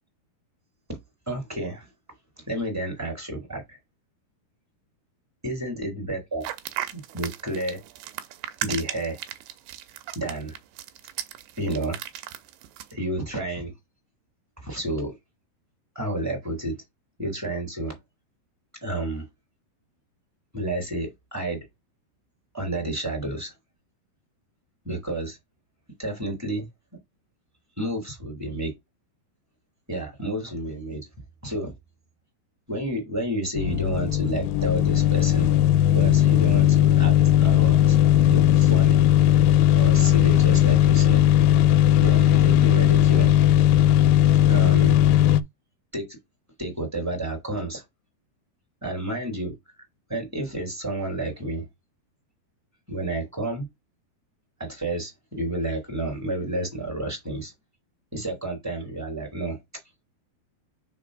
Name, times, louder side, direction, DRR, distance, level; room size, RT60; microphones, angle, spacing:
voice 1, 1.3-1.9 2.4-3.8 5.4-6.5 6.9-7.8 8.6-9.2 10.1-10.6 11.6-12.0 12.9-13.7 14.6-15.2 15.9-16.8 17.2-18.0 18.8-19.2 20.5-21.7 22.5-23.5 24.8-25.4 26.0-26.7 27.8-28.7 29.9-31.1 31.4-31.7 32.7-35.5 35.8-38.0 38.2-39.0 39.8-41.2 42.0-43.3 44.5-45.0 45.9-46.2 46.6-47.8 48.8-49.5 50.1-51.7 52.9-53.7 54.6-57.5 58.1-59.6, right 1 dB, 5° right, 1.9 m, -30 dB
sound 1, 6.4-12.9, right 12 dB, 85° right, 2.7 m, -35 dB
sound 2, 33.6-45.4, left 11 dB, 85° left, 2.6 m, -18 dB
5.1 x 4.2 x 4.9 m
omnidirectional pair, 4.7 m